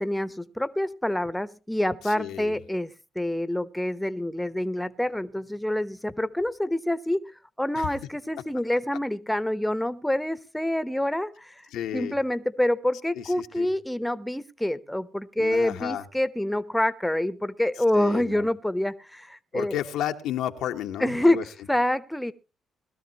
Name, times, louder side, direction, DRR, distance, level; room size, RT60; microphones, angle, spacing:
voice 1, 0.0-11.6 11.9-19.8 21.0-22.3, left 1 dB, 5° left, 1.0 m, -27 dB
voice 2, 2.0-2.6 7.7-7.9 11.7-12.2 13.1-13.7 15.4-16.0 17.9-18.5 19.5-21.4, left 11 dB, 85° left, 1.2 m, -32 dB
21.0 x 13.0 x 3.0 m
cardioid pair, 90°, 0 cm